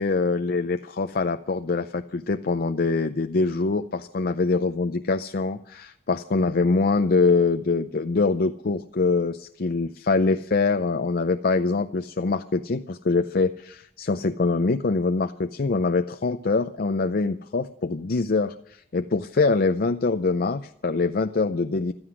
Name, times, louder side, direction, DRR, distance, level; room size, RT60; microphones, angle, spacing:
voice 1, 0.0-21.9, left 3 dB, 55° left, 8 dB, 0.5 m, -24 dB
16.0 x 13.0 x 6.2 m, 0.68 s
head